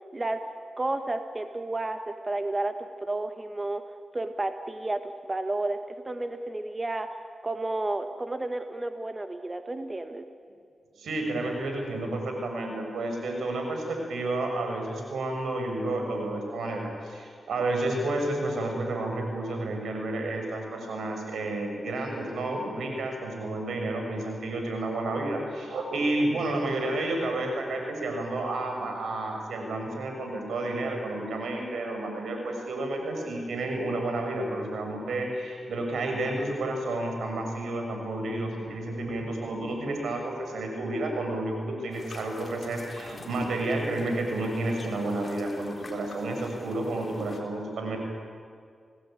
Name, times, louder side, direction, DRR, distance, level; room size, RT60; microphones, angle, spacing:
voice 1, 0.8-5.8 6.0-10.3, right 2 dB, 30° right, 7 dB, 1.5 m, -32 dB
voice 2, 10.9-48.0, right 2 dB, 85° right, 3 dB, 6.2 m, -31 dB
sound 1, 41.9-47.4, left 2 dB, 40° left, 4.0 m, -45 dB
29.5 x 18.5 x 9.0 m, 2.1 s
cardioid pair, 55°, 0 cm